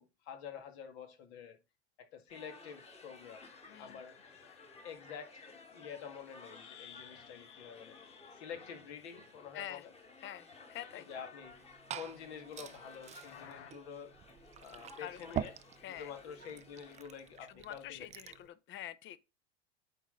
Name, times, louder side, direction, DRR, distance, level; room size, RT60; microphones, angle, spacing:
voice 1, 0.0-1.6 2.0-4.2 4.8-8.0 8.3-9.9 10.9-11.6 11.9-14.1 14.6-15.6 15.9-18.4, left 7 dB, 65° left, 1.9 m, -48 dB
sound 1, 2.3-17.5, left 3 dB, 20° left, 1.5 m, -56 dB
sound 2, 3.4-10.1 10.4-11.7 12.6-13.7, left 9 dB, 85° left, 0.9 m, -59 dB
voice 2, 3.6-4.0 9.5-9.9 10.2-11.1 15.0-15.5 15.8-16.1 17.5-19.2, left 12 dB, 35° left, 0.7 m, -46 dB
Glass / Fill (with liquid), 11.4-18.5, right 9 dB, 20° right, 0.4 m, -46 dB
9.0 x 4.0 x 3.8 m
hypercardioid pair, 95°, 35 cm